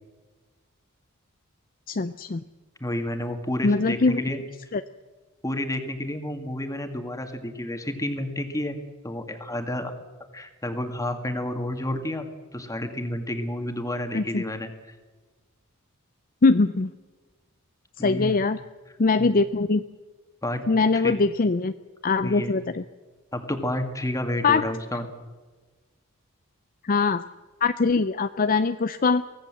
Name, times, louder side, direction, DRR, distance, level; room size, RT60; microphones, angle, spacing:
voice 1, 1.9-2.4 3.6-4.2 4.7-4.8 14.1-14.4 16.4-16.9 18.0-18.6 19.0-19.8 20.7-21.7 22.0-22.8 24.4-24.6 26.8-27.2 27.6-29.2, left 4 dB, 40° left, 11 dB, 0.6 m, -22 dB
voice 2, 2.8-4.4 5.4-8.8 9.0-9.9 10.3-12.3 12.5-14.7 18.0-18.4 19.2-19.3 20.4-20.6 20.9-21.2 22.2-22.5 23.3-25.1, left 1 dB, 15° left, 6 dB, 2.2 m, -30 dB
24.0 x 17.0 x 7.7 m, 1.3 s
head